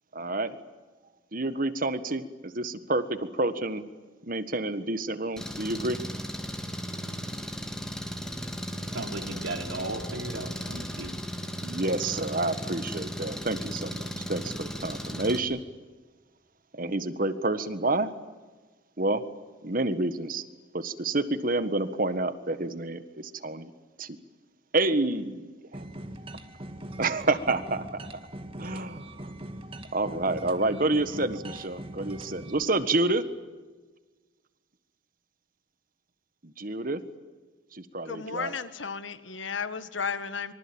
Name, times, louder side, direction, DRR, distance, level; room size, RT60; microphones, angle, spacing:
voice 1, 0.1-0.6 1.3-3.8 4.3-6.0 11.6-15.6 16.7-18.1 19.0-19.2 19.6-20.4 20.7-23.7 24.0-24.2 24.7-25.8 27.0-27.9 28.6-29.3 29.9-33.2 36.4-37.0 37.7-38.5, right 2 dB, 45° right, 1.6 m, -29 dB
Engine, 5.4-15.4, equal, 5° left, 2.9 m, -36 dB
voice 2, 8.9-11.1, right 2 dB, 85° right, 4.0 m, -35 dB
sound 1, 25.7-32.6, right 1 dB, 30° right, 2.0 m, -41 dB
voice 3, 38.1-40.5, left 5 dB, 70° left, 1.7 m, -34 dB
26.0 x 24.5 x 8.9 m
head